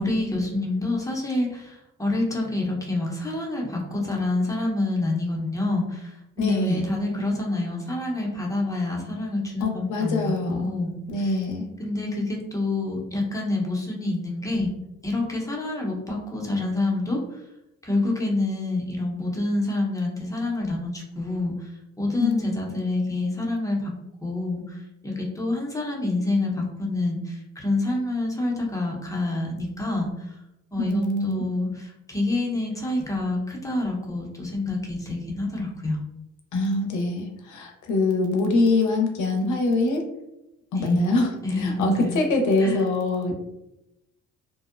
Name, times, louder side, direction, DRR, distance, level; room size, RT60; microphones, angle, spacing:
voice 1, 0.0-11.3 11.8-14.7 15.0-17.4 17.8-21.7 22.0-23.9 24.2-30.4 30.7-36.0 40.7-41.0 41.4-42.2 42.6-42.8, left 2 dB, 10° left, -2 dB, 0.7 m, -27 dB
voice 2, 6.4-6.9 9.6-10.7 11.1-11.7 22.2-22.4 30.8-31.4 36.5-40.0 40.7-43.3, left 2 dB, 75° left, 2 dB, 0.6 m, -24 dB
2.6 x 2.0 x 2.4 m, 0.89 s
cardioid pair, 90°, 30 cm